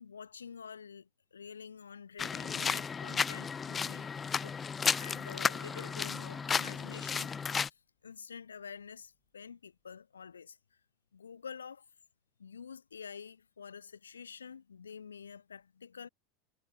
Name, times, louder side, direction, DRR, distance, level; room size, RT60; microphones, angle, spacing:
voice 1, 0.0-4.6 5.0-10.6 11.1-11.9 12.4-16.1, left 6 dB, 80° left, 3.9 m, -48 dB
sound 1, 2.2-7.7, left 6 dB, 25° left, 0.8 m, -33 dB
sound 2, 5.3-7.5, right 1 dB, ahead, 4.3 m, -55 dB
figure-of-eight pair, 85°, 0 cm